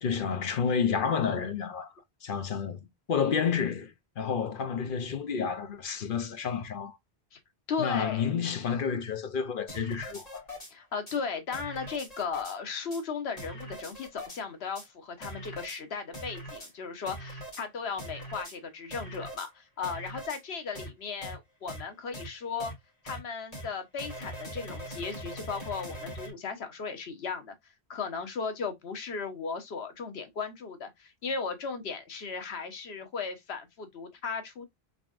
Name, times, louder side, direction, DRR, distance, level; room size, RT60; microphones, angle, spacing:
voice 1, 0.0-1.9 2.2-2.8 3.1-7.0 7.8-10.4, left 6 dB, 60° left, 0.9 m, -30 dB
voice 2, 7.7-8.3 10.7-22.7 23.0-34.7, left 5 dB, 85° left, 1.2 m, -36 dB
sound 1, 9.7-10.7 11.1-11.2 11.5-12.5 12.9-13.0 13.4-14.4 14.7-14.9 15.2-15.8 16.1-16.7 17.1-17.6 18.0-18.5 18.9-19.5 19.8-20.4 20.7-20.9 21.2-21.3 21.7-21.8 22.1-22.3 22.6-22.7 23.1-23.2 23.5-23.7 24.0-26.3, equal, 40° left, 2.1 m, -41 dB
3.8 x 3.6 x 2.4 m
omnidirectional pair, 1.0 m